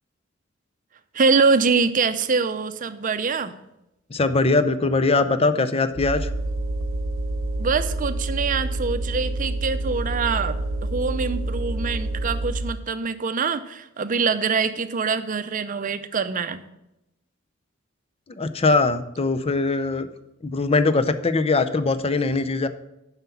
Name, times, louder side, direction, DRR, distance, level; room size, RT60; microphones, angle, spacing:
voice 1, 1.1-3.6 7.6-16.6, right 5 dB, 40° right, 11 dB, 0.6 m, -24 dB
voice 2, 4.1-6.3 18.3-20.1 20.4-22.7, left 3 dB, 30° left, 11 dB, 0.5 m, -21 dB
sound 1, 5.9-12.8, right 2 dB, 75° right, 0.7 m, -28 dB
7.3 x 5.8 x 7.0 m, 0.89 s
head